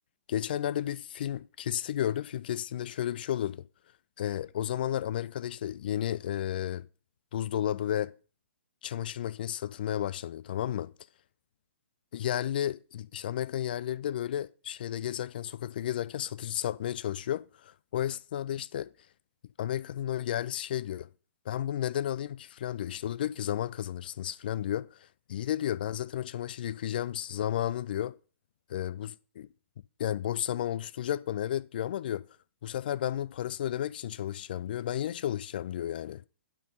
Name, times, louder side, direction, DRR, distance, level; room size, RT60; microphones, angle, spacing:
voice 1, 0.3-3.6 4.2-6.9 7.3-8.1 8.8-10.9 12.1-18.9 19.6-21.1 21.5-24.9 25.3-28.1 28.7-29.5 30.0-32.2 32.6-36.2, left 11 dB, 45° left, 0.3 m, -32 dB
8.9 x 4.2 x 5.2 m
figure-of-eight pair, 120°, 7 cm